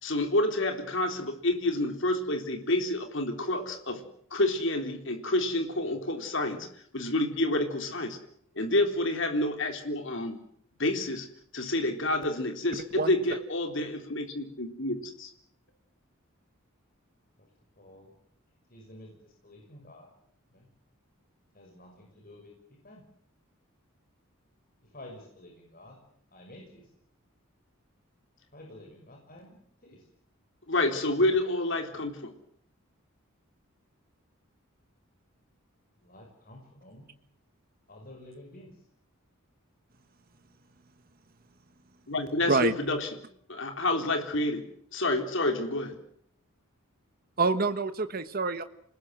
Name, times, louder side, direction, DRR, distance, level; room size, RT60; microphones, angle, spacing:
voice 1, 0.0-4.0 4.3-6.7 6.9-8.2 8.6-10.4 10.8-11.3 11.5-15.3 30.7-32.3 42.1-43.1 43.5-44.6 44.9-46.0, left 1 dB, 60° left, 5 dB, 3.8 m, -28 dB
voice 2, 6.1-6.6 17.4-17.5 17.8-18.1 18.7-20.1 20.5-20.7 21.5-22.5 22.8-23.0 24.9-26.0 26.3-26.9 28.5-29.6 29.8-30.0 31.9-32.0 36.0-37.1 37.9-38.7, left 1 dB, 40° left, 1 dB, 6.3 m, -50 dB
voice 3, 12.7-13.1 42.5-42.7 47.4-48.6, right 3 dB, 45° right, 10 dB, 1.2 m, -27 dB
28.0 x 20.0 x 7.7 m, 0.69 s
head